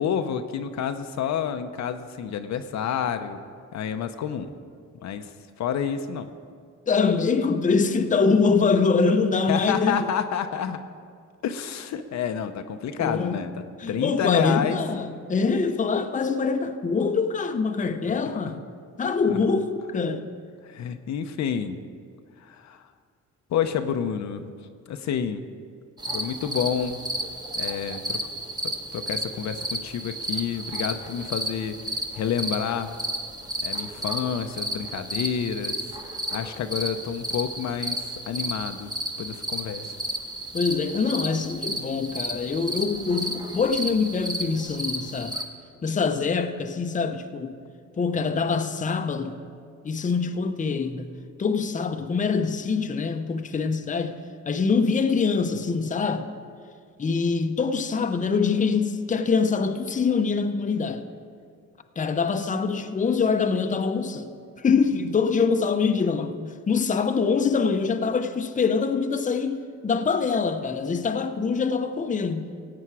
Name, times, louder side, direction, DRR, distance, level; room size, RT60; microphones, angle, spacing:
voice 1, 0.0-3.4 3.7-4.5 5.0-5.3 5.6-6.3 9.5-10.8 11.4-14.8 19.3-19.4 20.6-21.8 22.4-22.8 23.5-24.5 24.9-25.4 26.1-27.0 27.5-28.2 28.6-32.9 33.6-35.8 36.0-38.9 39.2-40.0, left 8 dB, 65° left, 0.7 m, -29 dB
voice 2, 6.9-10.0 13.0-13.4 13.8-18.6 19.0-20.3 40.5-45.4 45.8-47.6 48.0-49.4 49.8-51.1 51.4-54.2 54.5-56.3 57.0-61.0 62.0-64.3 64.6-72.5, left 5 dB, 25° left, 0.7 m, -24 dB
sound 1, 26.0-45.4, right 1 dB, 15° right, 1.2 m, -33 dB
16.0 x 8.7 x 4.8 m
cardioid pair, 90°, 30 cm